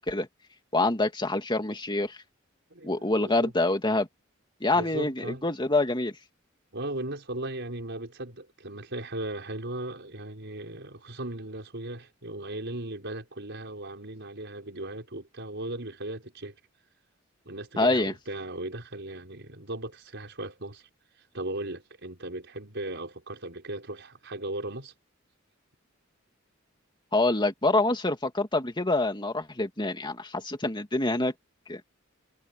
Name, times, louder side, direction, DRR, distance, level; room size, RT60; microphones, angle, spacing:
voice 1, 0.7-2.2 2.8-4.1 4.6-6.1 17.8-18.1 27.1-31.3 31.7-31.8, left 2 dB, 25° left, 2.4 m, -26 dB
voice 2, 2.7-3.5 4.7-5.5 6.7-16.5 17.5-20.9 21.3-24.9, right 1 dB, 60° right, 5.6 m, -37 dB
head